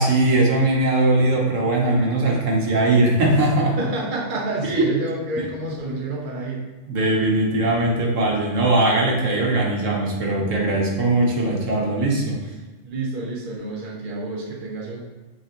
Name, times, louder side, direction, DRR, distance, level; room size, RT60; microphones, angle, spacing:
voice 1, 0.0-3.8 4.6-4.9 6.9-12.4, right 2 dB, 70° right, -2 dB, 1.6 m, -20 dB
voice 2, 3.8-6.6 12.8-15.0, right 2 dB, 40° right, -3 dB, 1.1 m, -29 dB
7.7 x 4.3 x 3.1 m, 1.2 s
omnidirectional pair, 1.4 m